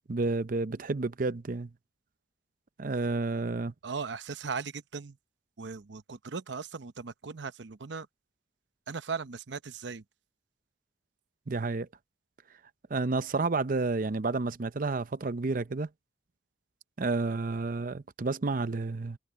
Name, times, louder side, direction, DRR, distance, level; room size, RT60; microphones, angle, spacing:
voice 1, 0.1-1.7 2.8-3.7 11.5-11.9 12.9-15.9 17.0-19.2, right 3 dB, 50° right, 0.6 m, -30 dB
voice 2, 3.8-5.2 5.6-8.1 8.9-10.0, right 5 dB, 80° right, 0.8 m, -38 dB
head